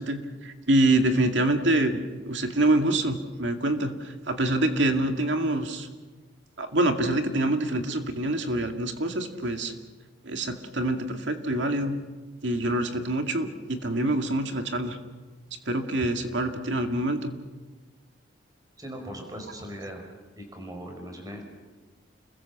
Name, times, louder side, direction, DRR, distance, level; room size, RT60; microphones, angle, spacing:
voice 1, 0.0-5.9 6.6-9.7 10.2-12.0 12.4-15.0 15.7-17.3, right 1 dB, 70° right, 5 dB, 2.3 m, -26 dB
voice 2, 18.8-20.0 20.3-21.4, equal, 20° right, 3 dB, 5.1 m, -39 dB
29.5 x 21.5 x 7.3 m, 1.3 s
head